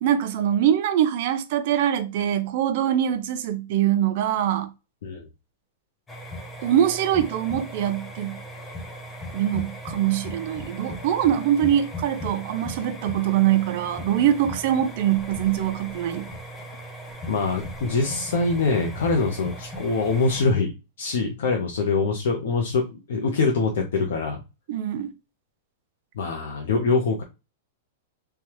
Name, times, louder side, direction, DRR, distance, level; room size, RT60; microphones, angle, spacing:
voice 1, 0.0-4.7 6.6-8.4 9.3-16.3 24.7-25.1, right 10 dB, 45° right, 0.5 m, -23 dB
sound 1, 6.1-20.5, equal, 10° left, 0.4 m, -37 dB
voice 2, 17.3-20.7 21.0-24.4 26.2-27.2, left 4 dB, 75° left, 0.7 m, -24 dB
3.3 x 2.3 x 2.9 m
supercardioid pair, 170°, 0 cm